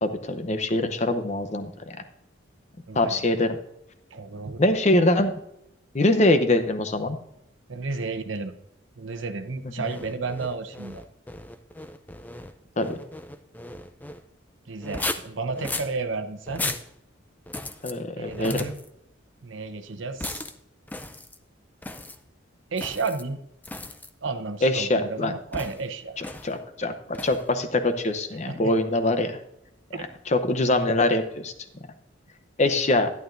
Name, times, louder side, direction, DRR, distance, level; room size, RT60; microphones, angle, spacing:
voice 1, 0.0-2.0 2.9-3.6 4.6-5.3 5.9-7.2 12.8-13.0 17.8-18.5 24.6-25.3 26.4-29.3 30.3-31.5 32.6-33.1, left 2 dB, 35° left, 8 dB, 0.7 m, -23 dB
voice 2, 2.9-3.2 4.1-4.6 7.7-8.5 9.0-11.0 14.7-16.7 18.2-18.8 19.4-20.4 22.7-23.4 24.2-26.2 28.5-28.7 29.9-30.1, right 4 dB, 75° right, 9 dB, 0.8 m, -32 dB
sound 1, 9.8-14.2 14.8-15.9 16.5-16.9 17.5-17.9 18.3-18.9 20.2-20.6 20.9-21.4 21.8-22.2 22.8-23.2 23.6-24.1 25.5-25.9 26.2-26.5 27.1-27.5, left 2 dB, 10° left, 0.4 m, -36 dB
11.5 x 11.0 x 2.6 m, 0.80 s
head